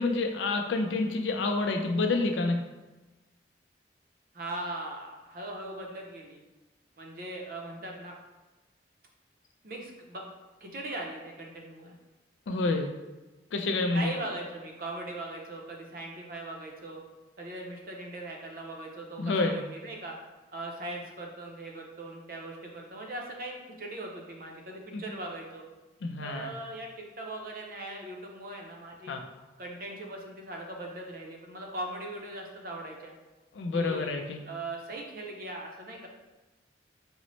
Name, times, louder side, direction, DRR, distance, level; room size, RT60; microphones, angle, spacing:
voice 1, 0.0-2.6 12.5-12.9 13.5-14.1 19.2-19.6 24.9-25.0 26.0-26.5 29.1-29.2 33.5-34.4, left 3 dB, 80° left, 4 dB, 0.4 m, -28 dB
voice 2, 4.3-6.4 7.0-8.1 9.6-10.2 10.6-12.0 13.9-17.0 17.4-20.2 20.5-25.7 26.2-29.2 29.6-33.1 33.7-34.1 34.5-36.1, right 2 dB, 50° right, 0 dB, 0.5 m, -40 dB
3.9 x 2.0 x 3.0 m, 1.1 s
head